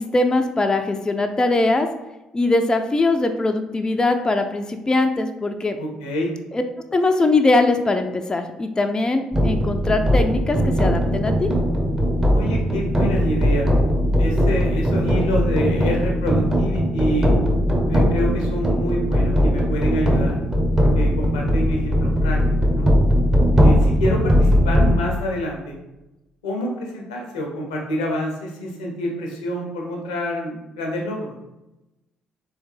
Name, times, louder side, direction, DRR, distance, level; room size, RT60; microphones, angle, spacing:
voice 1, 0.0-1.9 2.3-5.8 6.5-6.6 6.9-11.5, left 2 dB, 20° left, 6 dB, 0.4 m, -21 dB
voice 2, 5.8-6.3 12.3-13.7 14.2-17.3 17.9-20.4 20.8-22.9 23.6-25.7 26.4-31.3, equal, 80° left, 0 dB, 0.6 m, -27 dB
sound 1, 9.3-25.0, equal, 15° right, 0.8 m, -19 dB
3.2 x 3.1 x 3.2 m, 0.97 s
figure-of-eight pair, 45°, 4 cm